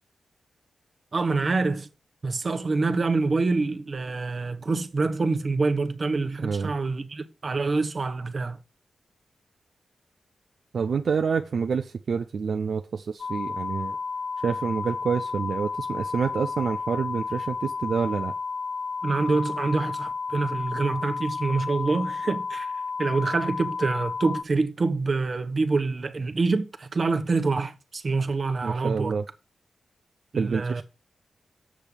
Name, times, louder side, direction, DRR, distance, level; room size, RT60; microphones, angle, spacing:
voice 1, 1.1-1.9 2.2-8.6 19.0-22.7 23.0-29.2 30.3-30.8, right 3 dB, 50° right, 1.1 m, -26 dB
voice 2, 6.4-6.7 10.7-14.0 14.4-18.3 28.6-29.2 30.4-30.8, right 6 dB, 75° right, 0.6 m, -27 dB
sound 1, 13.2-24.4, left 4 dB, 85° left, 0.3 m, -32 dB
7.5 x 6.5 x 5.3 m
cardioid pair, 70°, 0 cm